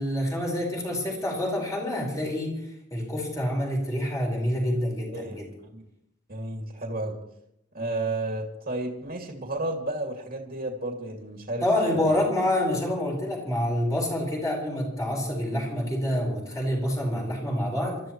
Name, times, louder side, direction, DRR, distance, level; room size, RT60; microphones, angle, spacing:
voice 1, 0.0-5.5 11.6-18.0, left 1 dB, 15° left, -1 dB, 4.7 m, -27 dB
voice 2, 5.1-5.4 5.7-5.8 6.3-7.1 7.7-11.6 11.9-12.1, right 2 dB, 45° right, 1 dB, 2.3 m, -32 dB
27.5 x 13.5 x 3.1 m, 0.79 s
head